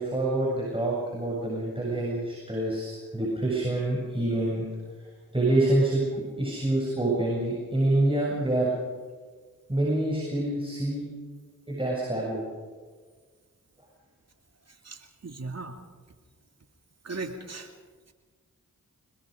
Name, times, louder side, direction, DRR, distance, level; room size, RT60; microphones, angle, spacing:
voice 1, 0.0-4.7 5.3-6.0 6.4-8.7 9.7-11.1 11.7-12.4, right 1 dB, 15° right, -3 dB, 7.4 m, -26 dB
voice 2, 14.8-15.8 17.0-17.7, right 3 dB, 45° right, 5 dB, 2.6 m, -37 dB
27.0 x 21.0 x 5.2 m, 1.5 s
supercardioid pair, 45°, 35 cm